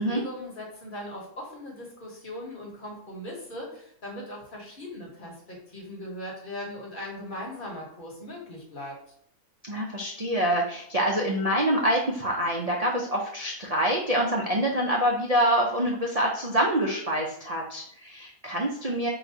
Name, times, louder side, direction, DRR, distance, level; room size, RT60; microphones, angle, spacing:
voice 1, 0.0-9.0, left 1 dB, 35° left, -2 dB, 1.3 m, -39 dB
voice 2, 9.6-19.1, equal, 80° right, -2 dB, 0.3 m, -26 dB
3.9 x 2.6 x 4.6 m, 0.67 s
omnidirectional pair, 1.6 m